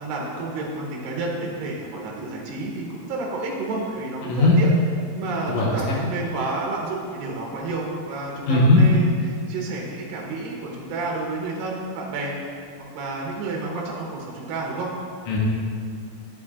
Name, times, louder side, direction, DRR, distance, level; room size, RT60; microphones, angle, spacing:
voice 1, 0.0-4.7 5.1-12.6 12.9-14.9, right 3 dB, 80° right, -2 dB, 2.6 m, -30 dB
voice 2, 4.2-4.6 5.5-6.0 8.5-8.8 15.3-15.4, left 2 dB, 65° left, -4 dB, 2.0 m, -18 dB
9.8 x 7.3 x 2.4 m, 2.2 s
omnidirectional pair, 4.1 m